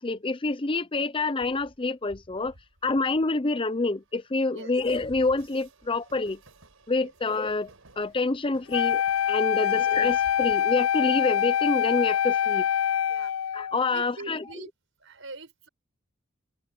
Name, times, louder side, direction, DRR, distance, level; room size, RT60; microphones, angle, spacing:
voice 1, 0.0-2.5 2.8-6.4 6.9-7.7 8.0-9.0 9.3-12.7 13.5-14.4, left 3 dB, 25° left, 0.7 m, -27 dB
Train, 1.4-11.8, right 1 dB, 90° right, 5.5 m, -55 dB
Wind instrument woodwind instrument, 8.7-13.8, left 9 dB, 80° left, 0.4 m, -25 dB
voice 2, 13.1-14.7 15.0-15.7, right 3 dB, 70° right, 6.7 m, -44 dB
open air
head